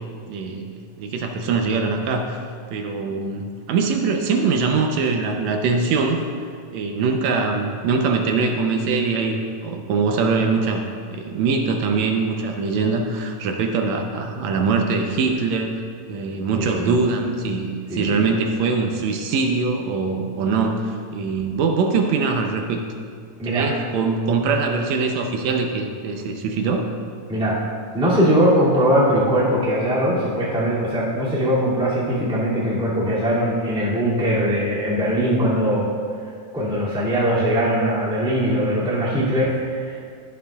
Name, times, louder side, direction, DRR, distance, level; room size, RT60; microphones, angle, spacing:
voice 1, 0.3-2.3 2.7-6.2 6.7-10.8 11.1-15.8 16.1-22.8 23.4-26.9, right 4 dB, 75° right, 3 dB, 1.7 m, -22 dB
voice 2, 16.6-17.0 17.9-18.2 23.4-23.7 27.3-27.6 27.9-35.9 36.5-40.1, equal, ahead, -9 dB, 1.7 m, -21 dB
17.5 x 7.4 x 2.3 m, 2.2 s
omnidirectional pair, 3.8 m